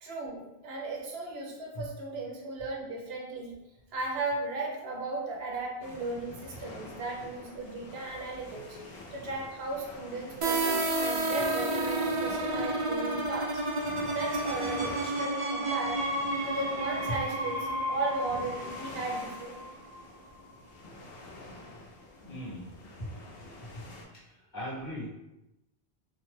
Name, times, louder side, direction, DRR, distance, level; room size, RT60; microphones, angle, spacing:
voice 1, 0.0-3.6 3.9-8.8 9.1-13.5 14.1-16.0 16.4-17.6 17.9-19.6, right 2 dB, 75° right, -1 dB, 0.8 m, -36 dB
sound 1, 5.8-24.0, left 2 dB, 70° left, 0.8 m, -47 dB
sound 2, 10.4-20.0, right 2 dB, 40° right, 0.5 m, -31 dB
voice 2, 22.2-23.2 23.5-25.1, equal, 45° left, -8 dB, 1.2 m, -40 dB
2.7 x 2.1 x 3.1 m, 0.93 s
omnidirectional pair, 1.1 m